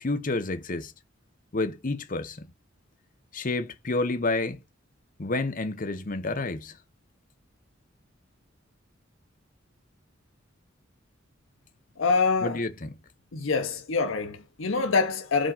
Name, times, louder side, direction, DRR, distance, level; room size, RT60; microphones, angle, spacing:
voice 1, 0.0-0.9 1.5-2.4 3.3-4.6 5.2-6.7 12.4-12.9, left 2 dB, 45° left, 0.8 m, -29 dB
voice 2, 12.0-12.6 13.3-15.5, left 4 dB, 80° left, 0.8 m, -25 dB
5.1 x 3.7 x 5.3 m
head